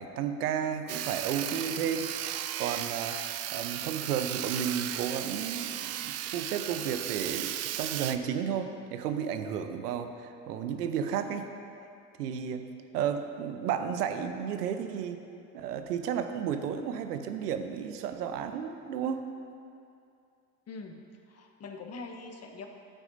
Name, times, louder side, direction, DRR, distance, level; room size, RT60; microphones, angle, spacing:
voice 1, 0.0-3.2 3.5-11.5 12.2-12.6 12.9-15.2 15.5-19.2, right 8 dB, 80° right, 8 dB, 0.8 m, -33 dB
Sawing, 0.9-8.2, right 12 dB, 35° right, 0.4 m, -35 dB
voice 2, 20.7-21.0 21.3-22.7, left 3 dB, 30° left, 3 dB, 1.1 m, -43 dB
12.5 x 9.1 x 2.7 m, 2.5 s
hypercardioid pair, 65°, 47 cm